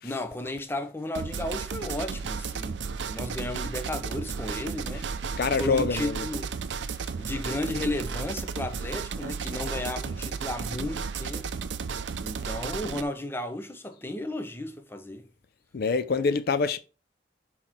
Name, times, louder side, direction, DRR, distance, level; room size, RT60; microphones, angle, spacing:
voice 1, 0.0-2.8 3.1-6.5 7.2-11.5 12.2-15.3 16.2-16.3, left 1 dB, 10° left, 0.6 m, -34 dB
sound 1, 1.1-13.0, right 5 dB, 80° right, 0.5 m, -33 dB
voice 2, 5.4-6.3 15.7-16.8, left 4 dB, 55° left, 0.4 m, -26 dB
5.9 x 3.9 x 4.4 m
head